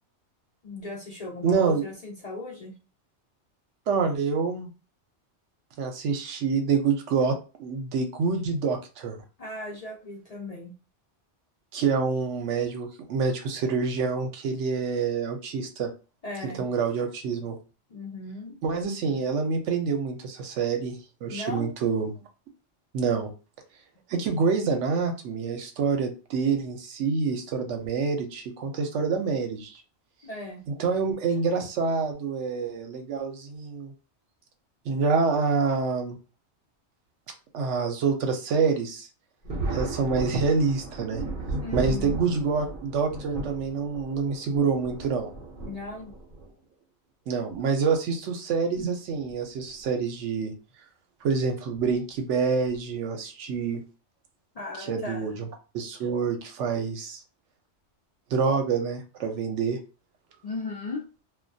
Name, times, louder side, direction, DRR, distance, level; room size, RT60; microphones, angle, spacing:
voice 1, 0.6-2.8 9.4-10.7 16.2-16.7 17.9-18.6 21.3-21.7 30.2-30.6 41.6-42.2 45.6-46.1 54.5-55.3 60.4-61.1, left 2 dB, 60° left, -2 dB, 0.4 m, -37 dB
voice 2, 1.4-1.8 3.9-4.7 5.8-9.2 11.7-15.9 16.6-17.6 18.6-22.1 22.9-23.3 24.1-29.8 30.8-33.9 34.9-36.2 37.5-39.1 39.7-41.2 41.7-45.3 47.3-50.5 51.2-53.8 54.9-55.4 55.7-57.2 58.3-59.8, right 5 dB, 80° right, 5 dB, 0.9 m, -27 dB
Thunder, 39.4-46.5 47.5-47.6 49.1-49.3 49.7-49.8 51.7-52.0 52.7-53.0, right 2 dB, 55° right, 0.7 m, -35 dB
2.3 x 2.2 x 2.6 m, 0.33 s
omnidirectional pair, 1.2 m